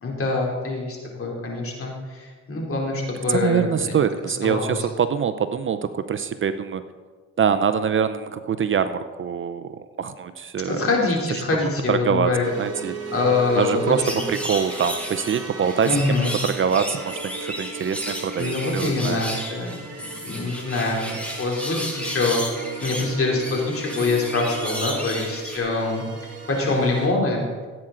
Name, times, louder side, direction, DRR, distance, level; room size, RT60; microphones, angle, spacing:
voice 1, 0.0-4.0 4.4-4.8 10.7-12.5 13.1-14.2 15.8-16.3 18.4-19.8 20.2-26.0 26.5-27.5, left 3 dB, 45° left, -1 dB, 3.2 m, -24 dB
voice 2, 3.3-6.8 7.4-10.9 11.9-12.3 12.6-12.9 13.6-14.0 14.3-16.2 16.4-19.2, right 7 dB, 40° right, 11 dB, 0.6 m, -24 dB
sound 1, 12.4-27.1, right 4 dB, 55° right, 2.4 m, -37 dB
sound 2, 14.0-25.6, equal, 5° left, 2.3 m, -33 dB
15.5 x 8.9 x 3.8 m, 1.4 s
cardioid pair, 90°, 30 cm